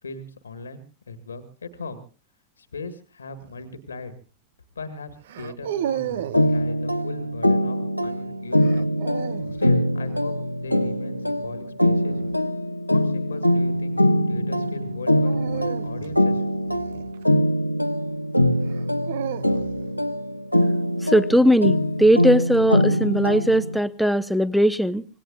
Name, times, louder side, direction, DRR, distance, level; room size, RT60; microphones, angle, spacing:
voice 1, 0.0-2.0 2.6-4.2 4.8-8.9 9.6-12.2 12.9-14.0 14.3-16.6, left 3 dB, 75° left, 10 dB, 1.8 m, -38 dB
sound 1, 3.4-3.7 5.3-6.5 8.6-9.6 12.0-12.4 15.2-17.6 18.6-19.9, right 11 dB, 60° right, 0.7 m, -33 dB
sound 2, 6.3-23.8, equal, 90° left, 1.0 m, -23 dB
voice 2, 21.0-25.1, equal, ahead, 14 dB, 0.7 m, -19 dB
25.5 x 19.0 x 2.5 m, 0.37 s
figure-of-eight pair, 90°, 0 cm